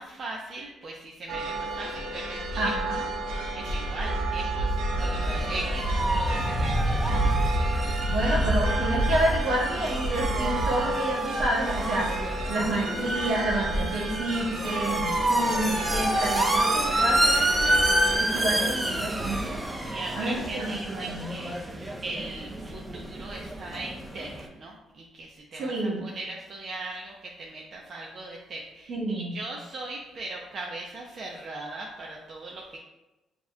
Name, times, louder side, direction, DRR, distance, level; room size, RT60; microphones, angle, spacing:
voice 1, 0.0-7.2 19.9-32.8, right 2 dB, 50° right, -1 dB, 0.6 m, -39 dB
sound 1, 1.3-18.2, right 1 dB, 90° right, 0.7 m, -29 dB
voice 2, 2.6-2.9 8.1-17.8 18.2-19.6 20.2-21.3 25.6-26.1 28.9-29.4, right 1 dB, 75° right, -3 dB, 1.4 m, -29 dB
sound 2, 5.0-24.5, right 1 dB, 20° right, 0.7 m, -29 dB
6.8 x 3.0 x 2.2 m, 1.0 s
cardioid pair, 90°, 0 cm